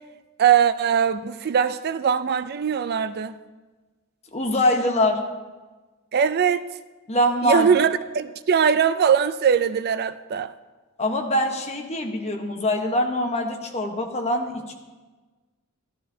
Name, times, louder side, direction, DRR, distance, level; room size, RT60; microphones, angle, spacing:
voice 1, 0.4-3.4 6.1-6.6 7.4-10.5, right 7 dB, 45° right, 0.4 m, -21 dB
voice 2, 4.3-5.2 7.1-7.7 11.0-14.7, left 1 dB, 30° left, 1.1 m, -23 dB
14.0 x 12.5 x 2.8 m
head